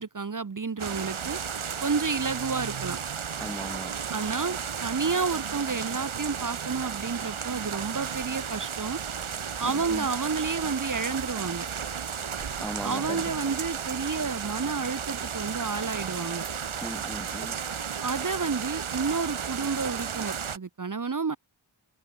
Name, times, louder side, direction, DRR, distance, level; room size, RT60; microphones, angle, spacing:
voice 1, 0.0-1.4 1.8-3.0 4.1-9.0 9.6-11.7 12.8-16.5 18.0-21.4, right 4 dB, 40° right, 0.8 m, -30 dB
sound 1, 0.8-20.6, right 7 dB, 70° right, 1.1 m, -34 dB
voice 2, 3.4-3.9 9.6-10.1 12.6-13.2 16.8-17.6, equal, ahead, 0.8 m, -37 dB
wide cardioid pair, 40°, 50 cm